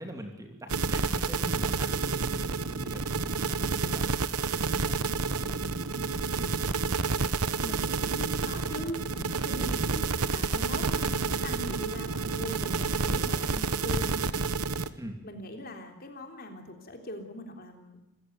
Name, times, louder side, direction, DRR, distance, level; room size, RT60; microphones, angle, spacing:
voice 1, 0.0-5.0 5.3-6.7 9.7-9.9 15.0-15.2, right 1 dB, 15° right, 4 dB, 2.8 m, -44 dB
sound 1, 0.7-14.9, right 4 dB, 90° right, 1.2 m, -29 dB
voice 2, 7.6-14.2 15.2-18.0, equal, 40° left, 4 dB, 3.6 m, -41 dB
27.0 x 15.5 x 9.5 m, 0.93 s
head